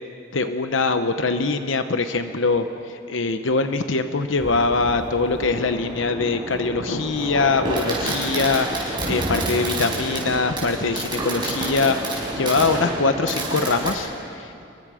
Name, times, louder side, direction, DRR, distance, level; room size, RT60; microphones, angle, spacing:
voice 1, 0.3-14.6, left 3 dB, 80° left, 8 dB, 0.9 m, -23 dB
Fireworks, 4.4-13.9, right 1 dB, 25° right, 5.5 m, -29 dB
28.5 x 23.0 x 5.0 m, 2.6 s
head